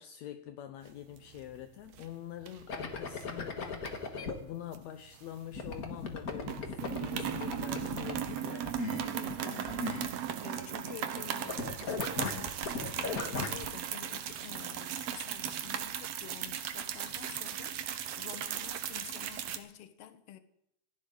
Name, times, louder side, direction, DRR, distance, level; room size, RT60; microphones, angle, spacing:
voice 1, 0.0-8.8, left 11 dB, 75° left, 1.9 m, -46 dB
sound 1, 0.9-1.6 1.9-2.1 2.5-3.3 3.8-5.7 6.0-6.2 6.4-19.6, right 10 dB, 70° right, 2.0 m, -37 dB
sound 2, 2.7-4.3 5.5-11.2 11.5-13.7, left 4 dB, 40° left, 1.5 m, -37 dB
voice 2, 9.0-10.1 10.4-20.4, left 10 dB, 60° left, 2.0 m, -49 dB
26.5 x 11.5 x 3.9 m
omnidirectional pair, 3.4 m